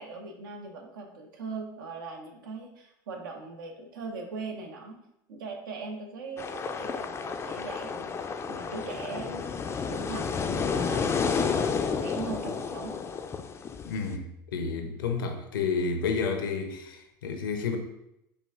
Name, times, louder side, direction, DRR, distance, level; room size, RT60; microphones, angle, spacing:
voice 1, 0.0-5.0 5.3-8.1 8.5-11.1 11.9-13.0, right 3 dB, 80° right, 2 dB, 0.8 m, -40 dB
sound 1, 6.4-14.1, left 5 dB, 25° left, 0.4 m, -31 dB
voice 2, 13.9-17.8, left 5 dB, 80° left, 6 dB, 0.7 m, -30 dB
5.1 x 2.4 x 3.5 m, 0.82 s
hypercardioid pair, 90°, 11 cm